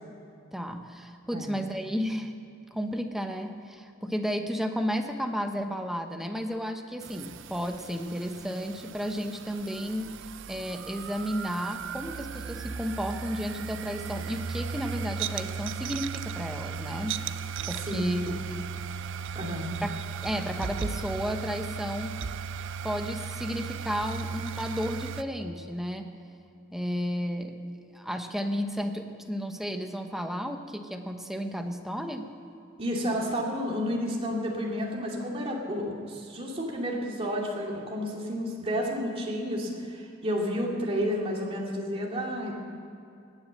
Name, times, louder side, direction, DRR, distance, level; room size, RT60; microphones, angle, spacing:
voice 1, 0.5-2.3 2.7-10.1 10.5-17.2 17.7-18.7 19.8-19.9 20.2-22.2 22.8-26.1 26.7-27.6 27.9-32.3, equal, ahead, 5 dB, 0.9 m, -33 dB
sound 1, 7.0-25.2, right 6 dB, 65° right, 0.5 m, -36 dB
voice 2, 17.7-18.3 19.3-19.8 32.8-42.5, equal, 30° right, -2 dB, 2.5 m, -31 dB
17.5 x 9.7 x 7.4 m, 2.5 s
head